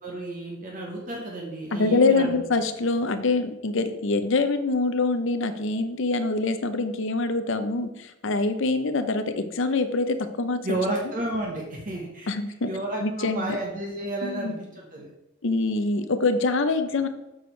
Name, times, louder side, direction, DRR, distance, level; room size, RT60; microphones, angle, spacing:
voice 1, 0.0-2.4 10.6-12.3 12.6-15.1, right 1 dB, 40° right, -2 dB, 1.2 m, -31 dB
voice 2, 1.7-10.6 12.3-12.7 13.0-13.6 14.2-14.5 15.4-17.1, left 3 dB, 65° left, 9 dB, 0.7 m, -25 dB
7.7 x 6.2 x 3.3 m, 0.93 s
head